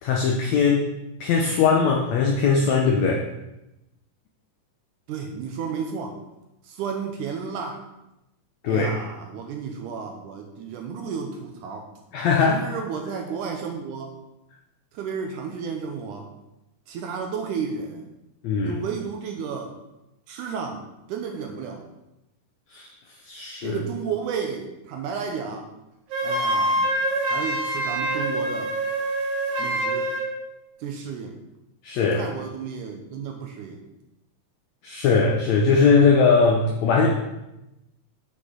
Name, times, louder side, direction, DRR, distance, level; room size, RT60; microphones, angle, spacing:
voice 1, 0.0-0.9 1.2-3.2 8.6-8.9 12.1-12.7 18.4-18.8 22.7-22.9 23.2-23.8 31.8-32.2 34.8-37.1, left 5 dB, 80° left, 0 dB, 1.5 m, -20 dB
voice 2, 5.1-6.2 6.6-7.8 8.7-11.9 12.5-14.1 14.9-16.3 16.9-18.0 18.7-19.7 20.3-21.9 23.6-25.7 26.2-26.9 27.3-28.7 29.6-30.1 30.8-31.4 32.0-33.8, right 6 dB, 75° right, 3 dB, 2.0 m, -32 dB
Wind instrument woodwind instrument, 26.1-30.3, right 1 dB, 60° right, 1.8 m, -25 dB
7.9 x 6.2 x 3.7 m, 0.93 s
omnidirectional pair, 4.1 m